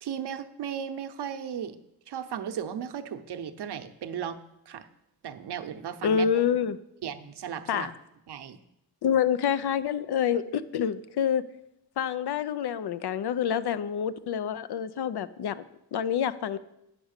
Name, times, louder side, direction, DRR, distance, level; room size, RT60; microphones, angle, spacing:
voice 1, 0.0-1.8 2.1-4.4 4.7-4.9 5.2-6.3 7.0-7.9 8.3-8.6, right 8 dB, 75° right, 9 dB, 0.8 m, -35 dB
voice 2, 6.0-6.8 7.7-7.9 9.0-11.4 12.0-15.6 15.9-16.6, left 8 dB, 75° left, 15 dB, 0.6 m, -27 dB
9.5 x 6.0 x 6.5 m, 0.85 s
cardioid pair, 75°, 40 cm